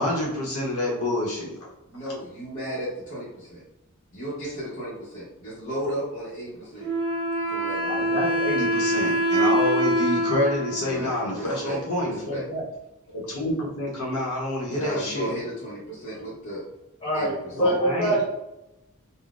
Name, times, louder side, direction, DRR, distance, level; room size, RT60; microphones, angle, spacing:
voice 1, 0.0-1.7 7.8-12.6 13.1-15.3 17.6-18.2, left 1 dB, 75° left, -3 dB, 0.8 m, -28 dB
voice 2, 1.9-3.6 4.1-6.9 7.5-8.0 10.9-12.4 14.7-16.6 17.1-17.8, right 1 dB, 35° left, -9 dB, 0.8 m, -35 dB
Wind instrument woodwind instrument, 6.8-12.3, right 1 dB, 30° right, 1.0 m, -25 dB
voice 3, 17.0-18.3, right 1 dB, 20° left, -5 dB, 1.2 m, -24 dB
3.8 x 2.0 x 2.3 m, 0.92 s
head